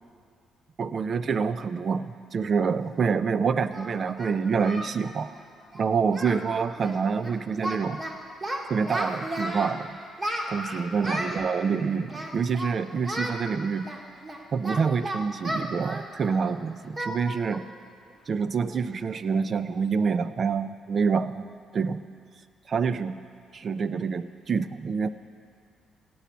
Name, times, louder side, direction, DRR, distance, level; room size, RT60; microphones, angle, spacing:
voice 1, 0.8-5.3 5.7-8.0 8.7-10.0 10.5-13.9 14.5-17.6 18.3-21.5 21.7-22.0 22.7-23.2 23.5-25.1, right 5 dB, 45° right, 13 dB, 0.6 m, -27 dB
Singing, 2.9-3.0 3.7-4.9 5.2-5.4 5.7-5.8 6.1-6.5 6.7-7.0 7.2-8.1 8.4-9.7 10.2-11.4 12.1-12.7 13.0-13.4 13.8-16.5 17.0-17.2 17.5-17.7 18.1-18.2 18.7-19.0, right 1 dB, 30° right, 2.1 m, -34 dB
16.0 x 8.7 x 8.2 m, 2.2 s
cardioid pair, 90°, 0 cm